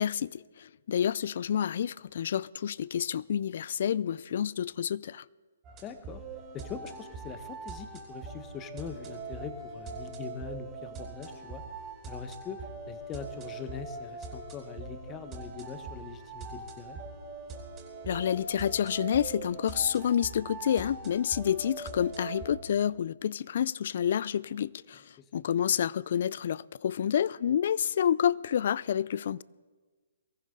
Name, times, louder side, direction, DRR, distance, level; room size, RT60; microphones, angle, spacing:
voice 1, 0.0-5.3 18.1-29.4, left 9 dB, 55° left, 0.4 m, -29 dB
sound 1, 5.6-22.5, right 4 dB, 20° right, 3.5 m, -42 dB
voice 2, 5.8-6.2 6.5-11.6 12.0-17.0 25.2-25.3, left 7 dB, 20° left, 1.1 m, -42 dB
22.5 x 15.0 x 3.8 m
hypercardioid pair, 140°, 0 cm